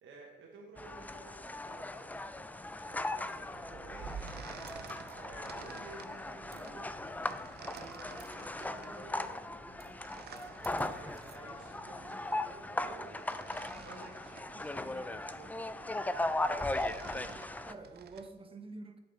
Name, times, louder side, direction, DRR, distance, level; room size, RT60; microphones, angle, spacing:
voice 1, 0.0-4.8 5.2-10.0 10.7-17.0, right 3 dB, 75° right, -1 dB, 1.2 m, -55 dB
sound 1, 0.8-17.7, left 2 dB, 10° left, 0.3 m, -38 dB
sound 2, 3.5-18.3, right 8 dB, 55° right, 0.5 m, -52 dB
voice 2, 5.3-5.7 10.7-11.2 17.6-19.0, right 3 dB, 25° right, 6 dB, 1.0 m, -49 dB
sound 3, 11.5-12.3 13.8-13.9 14.5-15.5, left 2 dB, 40° left, 2.2 m, -67 dB
8.3 x 6.5 x 3.3 m, 1.1 s
cardioid pair, 90°, 20 cm